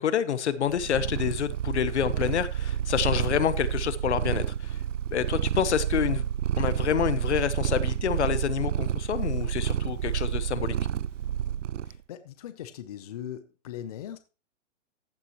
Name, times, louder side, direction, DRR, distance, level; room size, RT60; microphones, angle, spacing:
voice 1, 0.0-4.8 5.1-6.2 6.6-10.7, left 9 dB, 70° left, 1.2 m, -28 dB
Purr, 0.7-12.0, right 10 dB, 90° right, 0.6 m, -29 dB
voice 2, 11.8-14.2, left 10 dB, 30° left, 0.7 m, -40 dB
15.0 x 8.9 x 3.1 m
hypercardioid pair, 165°, 36 cm